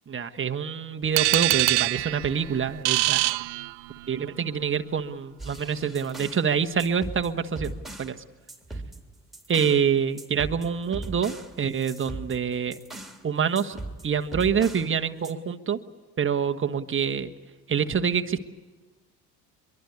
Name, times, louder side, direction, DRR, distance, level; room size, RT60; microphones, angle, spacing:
voice 1, 0.1-3.3 4.1-8.2 9.5-12.8 13.2-13.8 14.0-15.8 16.2-17.3 17.7-18.4, right 7 dB, 25° right, 7 dB, 1.3 m, -26 dB
sound 1, 1.2-4.2, right 25 dB, 60° right, 0.7 m, -24 dB
sound 2, 5.4-6.5 6.8-8.2 8.5-9.8 10.2-13.2 13.6-14.9 15.2-15.3, right 2 dB, ahead, 2.5 m, -39 dB
24.0 x 23.0 x 8.4 m, 1.3 s
hypercardioid pair, 60°, 47 cm